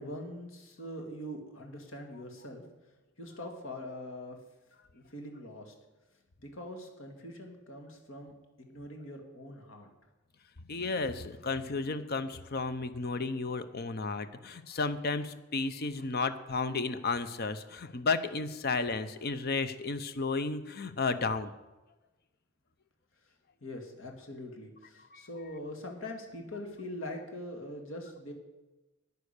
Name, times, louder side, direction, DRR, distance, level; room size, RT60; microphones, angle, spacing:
voice 1, 0.0-2.6 3.2-4.4 4.9-5.7 6.4-9.9 23.6-28.3, left 1 dB, 75° left, 3 dB, 2.1 m, -43 dB
voice 2, 10.7-21.5 25.1-25.2, left 3 dB, 50° left, 11 dB, 0.7 m, -33 dB
9.8 x 9.5 x 6.6 m, 1.1 s
head